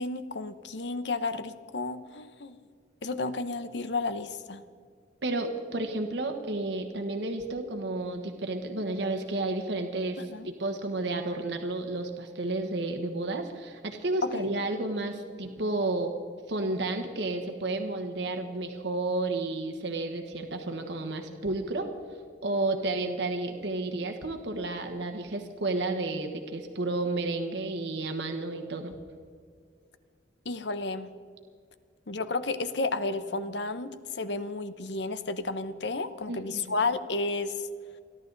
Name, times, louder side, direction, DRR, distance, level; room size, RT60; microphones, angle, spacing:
voice 1, 0.0-2.6 3.0-4.6 10.3-10.5 14.2-14.4 30.4-31.1 32.1-37.7, left 3 dB, 65° left, 12 dB, 0.9 m, -32 dB
voice 2, 5.2-16.1 16.5-21.9 22.4-28.9 36.3-36.7, right 2 dB, 65° right, 4 dB, 1.3 m, -31 dB
29.5 x 11.5 x 4.0 m, 2.1 s
head